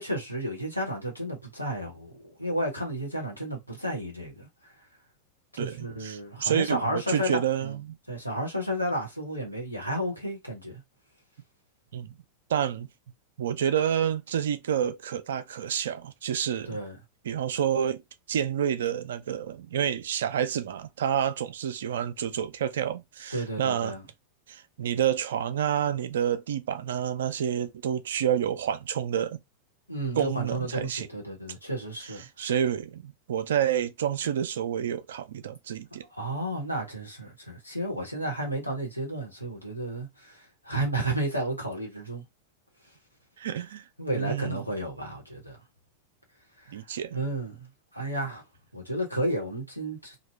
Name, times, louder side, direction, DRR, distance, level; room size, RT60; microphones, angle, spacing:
voice 1, 0.0-4.7 5.5-7.8 8.1-10.8 16.6-17.0 23.3-24.0 29.9-32.5 36.1-42.2 44.0-45.6 46.6-46.8 47.1-48.4 48.7-50.1, right 1 dB, 90° left, 1.1 m, -32 dB
voice 2, 5.6-8.0 11.9-12.1 12.5-12.9 13.4-16.8 17.3-18.0 18.3-23.9 24.5-29.4 30.2-31.1 32.0-36.0 43.4-43.8 44.1-44.6 46.7-47.2, right 9 dB, 60° right, 0.4 m, -29 dB
2.7 x 2.3 x 3.2 m
figure-of-eight pair, 90°, 0 cm